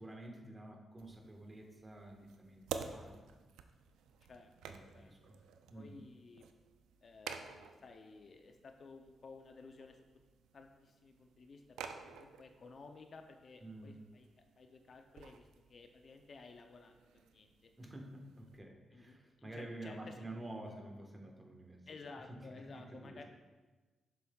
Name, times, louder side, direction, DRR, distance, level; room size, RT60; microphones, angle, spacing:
voice 1, 0.0-3.4 4.7-5.4 5.7-6.0 13.6-14.0 17.8-23.2, right 1 dB, 25° right, 2 dB, 1.4 m, -50 dB
sound 1, 1.0-18.6, right 7 dB, 90° right, 0.3 m, -52 dB
voice 2, 4.3-5.1 5.7-6.5 7.0-10.0 10.5-14.3 14.6-17.7 18.9-20.1 21.9-23.2, left 4 dB, 55° left, 5 dB, 0.5 m, -55 dB
7.2 x 6.7 x 2.3 m, 1.2 s
supercardioid pair, 60°, 0 cm